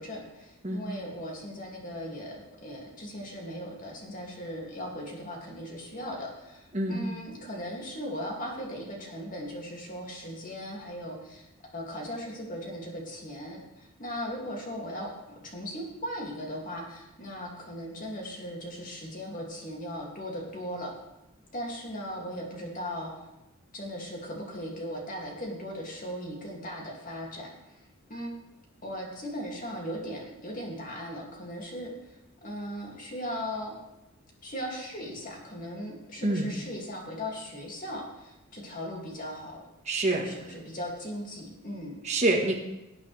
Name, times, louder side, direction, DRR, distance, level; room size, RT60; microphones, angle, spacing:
voice 1, 0.0-11.5 11.7-20.9 21.5-23.1 23.7-28.3 28.8-31.9 32.4-33.7 34.4-39.6 40.2-42.0, equal, 35° left, -1 dB, 2.6 m, -38 dB
voice 2, 36.2-36.5 39.8-40.3 42.0-42.6, right 2 dB, 30° right, -1 dB, 1.5 m, -26 dB
18.0 x 8.2 x 3.4 m, 0.96 s
head